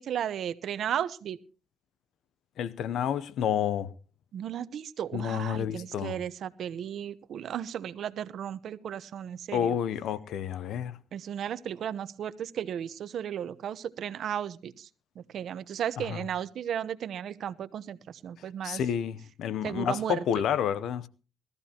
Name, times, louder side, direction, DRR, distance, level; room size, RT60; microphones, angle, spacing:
voice 1, 0.0-1.4 4.3-9.7 11.1-14.9 15.2-18.8 19.6-20.2, right 9 dB, 65° right, 0.8 m, -35 dB
voice 2, 2.6-3.9 5.1-6.2 9.5-11.0 16.0-16.2 18.6-21.1, left 9 dB, 75° left, 0.7 m, -30 dB
20.5 x 14.0 x 2.9 m
cardioid pair, 90°, 0 cm